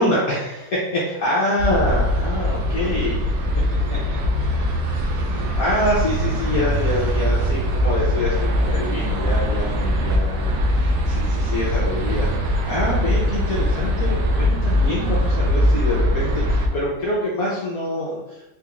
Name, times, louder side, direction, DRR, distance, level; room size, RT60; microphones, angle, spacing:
voice 1, 0.0-3.3 3.9-12.3 12.7-18.4, left 1 dB, 65° left, -6 dB, 0.9 m, -26 dB
sound 1, 1.6-16.7, equal, 80° right, 1.3 m, -21 dB
4.0 x 2.4 x 2.9 m, 0.93 s
omnidirectional pair, 2.1 m